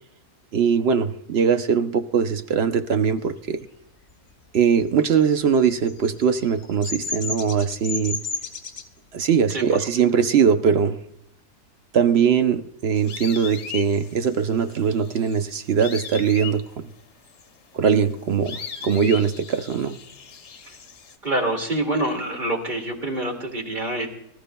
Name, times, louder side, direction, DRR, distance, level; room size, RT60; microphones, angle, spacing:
voice 1, 0.5-3.6 4.5-8.2 9.1-11.0 11.9-16.9 17.7-20.0, right 7 dB, 55° right, 9 dB, 0.7 m, -21 dB
Bird vocalization bird call bird song, 5.1-8.8, left 3 dB, 40° left, 1.3 m, -31 dB
voice 2, 9.5-9.8 20.7-20.8 21.2-24.1, right 1 dB, 30° right, 2 dB, 2.3 m, -26 dB
sound 1, 12.9-21.2, left 7 dB, 55° left, 1.1 m, -39 dB
25.0 x 14.0 x 2.2 m, 0.82 s
omnidirectional pair, 1.6 m